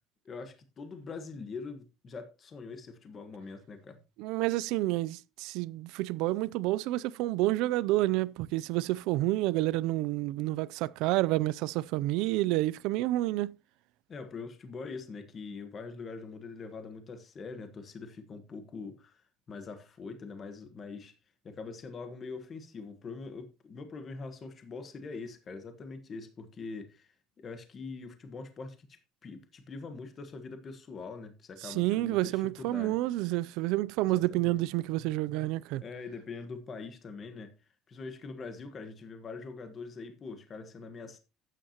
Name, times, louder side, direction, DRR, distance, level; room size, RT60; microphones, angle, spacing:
voice 1, 0.2-4.0 14.1-21.1 21.4-33.0 34.0-34.6 35.8-37.5 37.9-41.2, left 4 dB, 25° left, 1.2 m, -43 dB
voice 2, 4.2-13.5 31.6-35.8, right 17 dB, 65° right, 0.4 m, -29 dB
12.0 x 9.2 x 2.9 m
cardioid pair, 180°, 0 cm